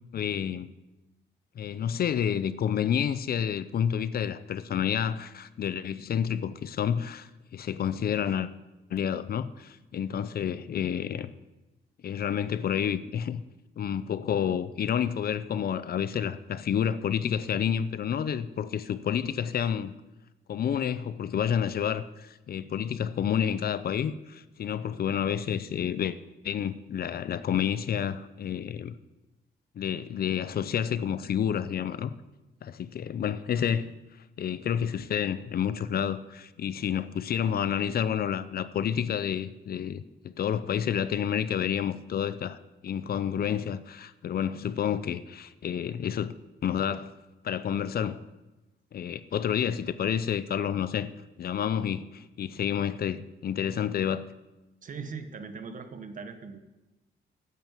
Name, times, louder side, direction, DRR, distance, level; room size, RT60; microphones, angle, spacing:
voice 1, 0.1-0.7 1.6-8.5 8.9-11.3 12.0-13.4 13.8-19.9 20.5-26.2 26.4-29.0 29.8-32.1 32.6-33.9 34.4-42.6 42.8-46.3 46.6-47.1 47.4-48.2 48.9-51.1 51.4-54.2, left 8 dB, 50° left, 14 dB, 0.5 m, -29 dB
voice 2, 54.8-56.6, right 5 dB, 40° right, 8 dB, 1.1 m, -40 dB
10.5 x 9.0 x 7.4 m, 1.0 s
wide cardioid pair, 165°, 20 cm